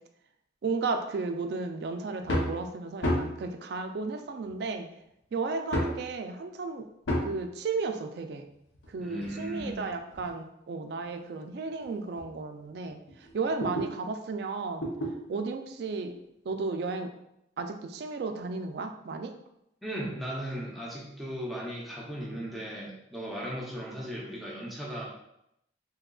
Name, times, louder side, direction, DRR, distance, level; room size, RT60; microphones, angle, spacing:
voice 1, 0.6-4.9 5.3-6.9 7.2-8.5 8.9-14.9 15.3-16.1 16.5-17.1 17.6-19.3, right 4 dB, 60° right, 6 dB, 0.3 m, -34 dB
sound 1, 2.2-2.6 3.0-3.5 4.5-4.6 5.7-6.0 7.1-7.4 8.7-10.4 11.0-11.1 11.8-11.9 12.2-12.3 12.7-13.9 14.8-15.2 16.5-16.6, left 1 dB, 80° left, 0.7 m, -31 dB
voice 2, 9.0-9.8 19.8-25.1, equal, ahead, -4 dB, 0.5 m, -37 dB
3.6 x 2.8 x 2.3 m, 0.79 s
head